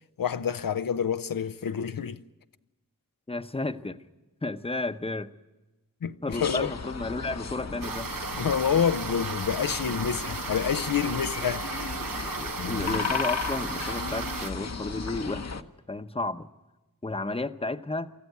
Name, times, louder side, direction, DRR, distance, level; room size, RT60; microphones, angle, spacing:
voice 1, 0.2-2.2 6.0-6.7 8.4-11.7 12.6-13.1, left 7 dB, 85° left, 0.7 m, -28 dB
voice 2, 3.3-4.0 4.4-5.3 6.2-8.1 12.4-16.5 17.0-18.1, left 2 dB, 15° left, 0.9 m, -32 dB
sound 1, 6.3-15.6, left 5 dB, 50° left, 1.0 m, -35 dB
sound 2, 7.8-14.5, right 5 dB, 75° right, 1.1 m, -35 dB
24.0 x 14.0 x 9.5 m
wide cardioid pair, 55°, 33 cm